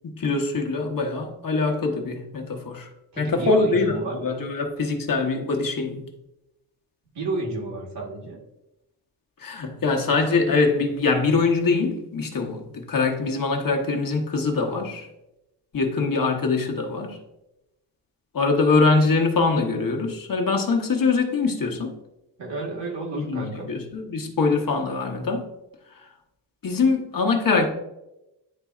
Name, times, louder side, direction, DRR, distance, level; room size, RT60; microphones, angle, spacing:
voice 1, 0.1-2.9 3.2-6.1 9.4-15.1 15.7-17.2 18.3-21.9 23.2-25.5 26.6-27.7, left 4 dB, 55° left, 1.0 m, -23 dB
voice 2, 3.1-4.2 7.1-8.4 22.4-23.7, right 3 dB, 85° right, 1.8 m, -30 dB
10.5 x 4.0 x 2.4 m
wide cardioid pair, 155°, 41 cm